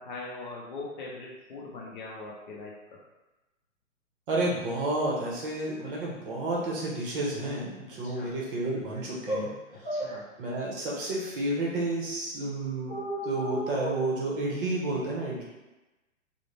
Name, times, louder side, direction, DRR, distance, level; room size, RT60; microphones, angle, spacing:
voice 1, 0.0-2.8 8.0-8.3 9.9-10.3, left 3 dB, 35° left, -4 dB, 0.5 m, -41 dB
voice 2, 4.3-9.5 9.8-9.9 10.4-12.9 13.2-15.4, right 2 dB, 40° right, -4 dB, 0.8 m, -31 dB
sound 1, 8.9-9.0 9.3-9.5 9.8-10.1 12.9-13.9, equal, 5° left, 0.7 m, -32 dB
2.4 x 2.1 x 3.1 m, 1.1 s
hypercardioid pair, 140°, 40 cm